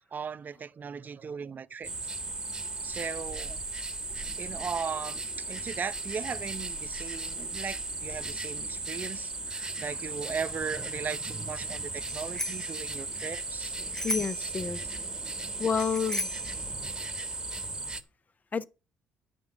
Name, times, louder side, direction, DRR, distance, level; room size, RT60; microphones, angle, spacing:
voice 1, 0.0-1.9 2.8-3.6 4.4-14.1 15.2-15.3, right 6 dB, 45° right, 0.7 m, -38 dB
sound 1, 1.8-18.0, right 3 dB, 15° right, 1.7 m, -36 dB
Bicycle bell, 12.0-12.7 13.9-14.5 15.8-16.5, left 1 dB, 10° left, 1.0 m, -35 dB
voice 2, 14.0-14.8 15.6-16.3 18.5-18.6, left 6 dB, 35° left, 0.9 m, -29 dB
9.5 x 5.4 x 7.1 m
hypercardioid pair, 55°, 4 cm